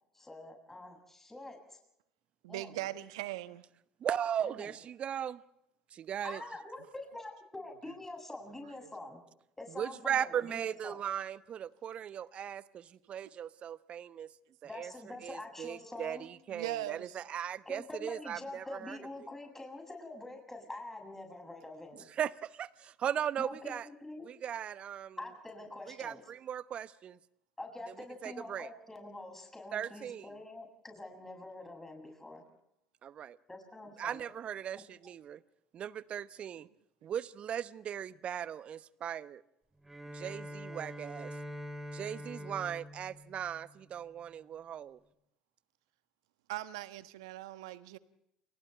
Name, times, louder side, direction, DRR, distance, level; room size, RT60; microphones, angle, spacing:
voice 1, 0.1-1.8 2.5-2.9 4.4-4.7 6.2-9.2 9.6-11.0 14.6-16.3 17.7-22.1 23.4-24.3 25.2-26.2 27.6-32.4 33.5-34.3, left 2 dB, 10° left, 7.3 m, -46 dB
voice 2, 2.4-3.6 6.3-6.4 16.5-17.2 36.5-36.7 46.5-48.0, right 15 dB, 70° right, 1.2 m, -40 dB
voice 3, 4.0-5.4 5.9-6.4 9.8-14.3 14.8-14.9 15.2-19.0 22.2-23.9 24.3-25.2 26.0-27.2 28.2-28.7 29.7-30.2 33.0-33.4 34.0-35.4 35.7-36.7 37.0-39.4 40.1-41.3 41.9-45.0, right 9 dB, 45° right, 1.0 m, -38 dB
Bowed string instrument, 39.8-44.3, equal, 10° right, 3.9 m, -45 dB
29.5 x 29.0 x 3.4 m
hypercardioid pair, 65°, 3 cm